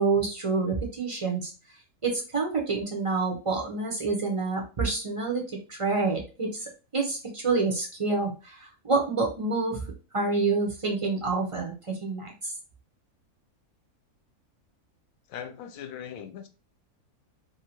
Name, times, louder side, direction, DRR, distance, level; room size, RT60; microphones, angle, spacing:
voice 1, 0.0-1.5 2.0-5.4 5.7-6.6 6.9-9.8 10.1-12.5, right 3 dB, 35° right, 0.5 m, -27 dB
voice 2, 15.3-16.5, left 8 dB, 70° left, 0.9 m, -39 dB
2.7 x 2.7 x 2.8 m
omnidirectional pair, 1.6 m